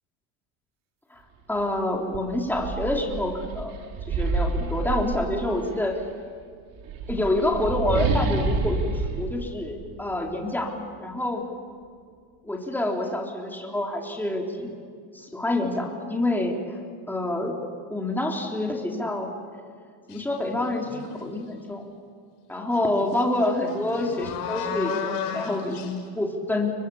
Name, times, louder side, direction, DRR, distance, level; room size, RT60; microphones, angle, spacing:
voice 1, 1.5-3.7 4.1-6.0 7.1-10.7 11.0-11.4 12.4-14.8 15.1-16.6 17.1-17.6 17.9-19.3 20.1-21.9 22.5-26.7, left 1 dB, 5° left, 0 dB, 3.6 m, -27 dB
sound 1, 1.6-1.7 2.1-5.7 6.7-10.3, right 4 dB, 45° right, 4.2 m, -28 dB
sound 2, 20.1-20.3 20.8-21.4 22.7-22.8 23.1-25.9, left 7 dB, 75° left, 6.0 m, -33 dB
30.0 x 24.5 x 7.2 m, 2.1 s
supercardioid pair, 125°, 45 cm